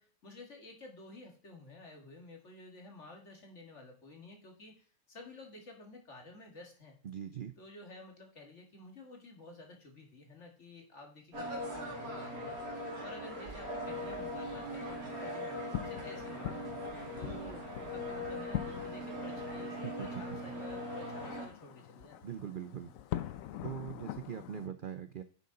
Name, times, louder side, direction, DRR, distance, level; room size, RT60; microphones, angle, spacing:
voice 1, 0.0-7.0 7.6-12.6 13.0-16.6 17.2-22.4, left 2 dB, 55° left, 2 dB, 2.2 m, -52 dB
voice 2, 7.0-7.5 19.8-20.2 22.2-22.9 23.6-25.2, right 9 dB, 60° right, 10 dB, 0.5 m, -41 dB
sound 1, 11.3-21.5, equal, 75° right, 2.6 m, -40 dB
sound 2, 13.8-24.7, left 12 dB, 70° left, 1.0 m, -44 dB
10.5 x 6.8 x 3.9 m, 0.42 s
omnidirectional pair, 1.5 m